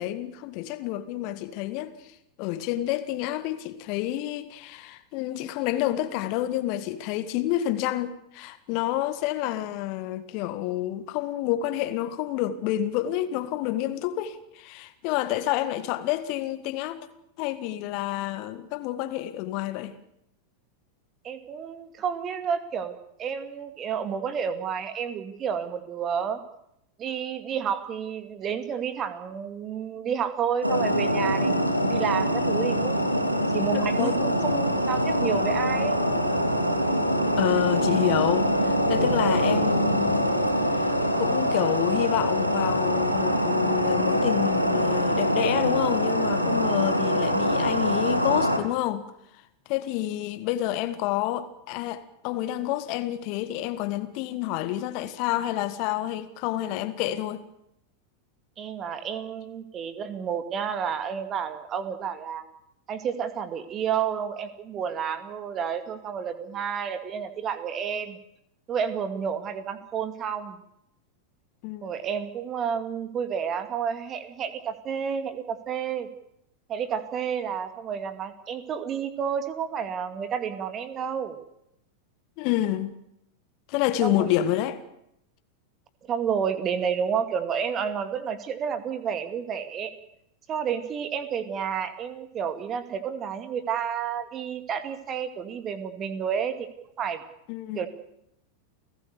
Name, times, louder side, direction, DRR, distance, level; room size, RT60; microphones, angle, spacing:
voice 1, 0.0-1.9 2.4-17.1 17.4-19.9 33.7-34.3 37.4-49.1 49.7-57.4 71.6-71.9 82.4-82.9 83.7-84.8 97.5-97.9, left 13 dB, 45° left, 1.7 m, -29 dB
voice 2, 21.2-26.4 27.0-31.5 31.9-33.2 33.5-36.0 58.6-62.4 62.9-68.2 68.7-70.6 71.8-76.1 76.7-81.4 84.0-84.3 86.1-89.9 90.5-96.7 97.0-97.2 97.8-97.9, right 7 dB, 30° right, 2.3 m, -30 dB
sound 1, 30.6-48.6, equal, 90° right, 3.0 m, -24 dB
30.0 x 17.0 x 6.8 m
figure-of-eight pair, 90°, 0 cm